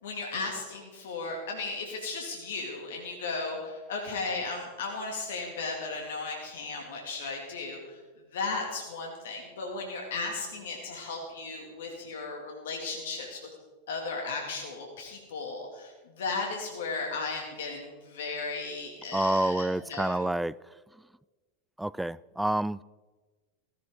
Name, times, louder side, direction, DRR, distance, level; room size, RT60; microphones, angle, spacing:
voice 1, 0.0-13.4 13.9-20.3, left 3 dB, 70° left, 0 dB, 2.5 m, -35 dB
voice 2, 19.1-20.5 21.8-22.8, right 1 dB, 5° right, 21 dB, 0.3 m, -28 dB
16.0 x 15.5 x 3.9 m, 1.3 s
hypercardioid pair, 95°, 0 cm